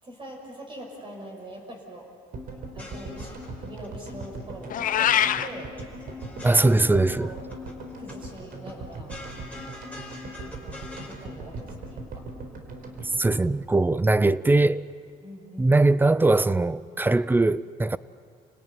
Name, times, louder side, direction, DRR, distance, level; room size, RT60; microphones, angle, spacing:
voice 1, 0.0-2.1 2.7-5.7 6.6-7.5 8.0-9.1 10.4-12.2 15.2-15.8, right 1 dB, 30° right, 6.3 m, -43 dB
sound 1, 2.3-14.6 14.8-14.9 15.1-15.2, right 2 dB, 60° right, 4.3 m, -40 dB
sound 2, 2.6-3.9 4.2-4.9 5.1-7.2 7.5-8.2 8.5-11.2, left 2 dB, 10° left, 5.1 m, -44 dB
Meow, 4.7-5.5, left 10 dB, 55° left, 0.7 m, -22 dB
voice 2, 6.4-7.3 13.2-14.9 15.6-18.0, right 2 dB, 10° right, 0.6 m, -21 dB
28.5 x 18.0 x 9.4 m
cardioid pair, 110°, 17 cm